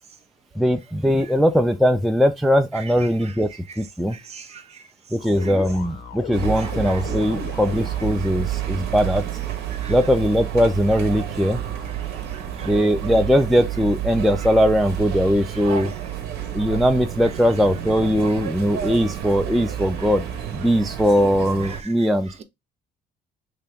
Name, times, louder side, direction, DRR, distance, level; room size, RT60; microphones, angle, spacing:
voice 1, 0.6-3.5 3.8-4.2 5.1-9.2 9.9-11.6 12.6-15.9 16.5-20.2 20.5-22.4, equal, ahead, 0.3 m, -20 dB
voice 2, 2.7-3.3 4.3-4.6 5.4-5.5 6.6-7.0 9.8-9.9 12.3-12.7 15.5-15.9 17.2-17.3 18.2-18.3 21.6-21.8, right 6 dB, 40° right, 0.7 m, -41 dB
sound 1, 5.2-8.3, left 5 dB, 90° left, 0.8 m, -35 dB
sound 2, 6.3-21.8, right 10 dB, 75° right, 0.9 m, -30 dB
3.3 x 2.9 x 3.4 m
cardioid pair, 110°, 17 cm